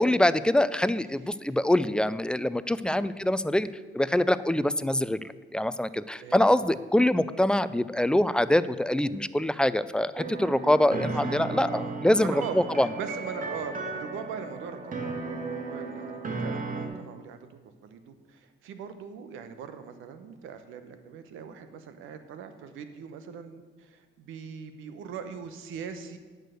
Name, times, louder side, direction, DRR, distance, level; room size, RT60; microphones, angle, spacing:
voice 1, 0.0-3.7 3.9-5.2 5.5-12.9, left 1 dB, 5° left, 14 dB, 0.3 m, -24 dB
sound 1, 10.2-16.9, right 3 dB, 40° right, 1.7 m, -35 dB
voice 2, 11.2-17.4 17.8-26.2, right 7 dB, 90° right, 9 dB, 0.9 m, -41 dB
8.9 x 6.5 x 6.5 m, 1.4 s
cardioid pair, 90°, 20 cm